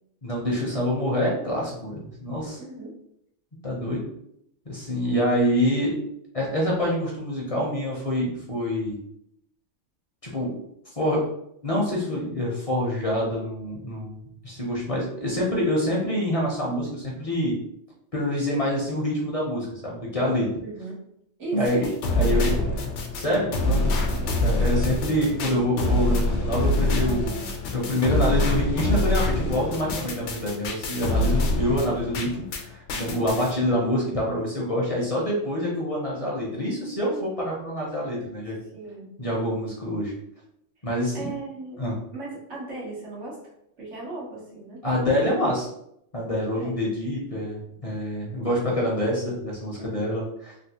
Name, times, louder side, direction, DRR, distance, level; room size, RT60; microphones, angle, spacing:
voice 1, 0.2-2.6 3.6-4.0 4.7-6.0 6.3-9.0 10.2-10.5 10.9-11.3 11.6-17.6 18.1-20.5 21.5-21.9 22.2-22.5 23.1-24.1 24.4-27.4 27.7-38.6 39.2-40.1 40.8-41.3 41.8-42.0 44.8-45.7 46.1-50.5, equal, 35° left, -3 dB, 0.6 m, -26 dB
voice 2, 2.6-2.9 20.6-21.0 21.4-21.8 22.2-22.7 24.1-24.3 38.7-39.1 41.1-41.8 42.1-43.4 43.8-44.8 46.6-46.8 49.8-50.1, right 2 dB, 90° right, -5 dB, 1.5 m, -37 dB
sound 1, 21.6-32.6 32.9-33.5, left 2 dB, 80° left, 0.9 m, -25 dB
3.4 x 2.5 x 2.8 m, 0.75 s
omnidirectional pair, 1.2 m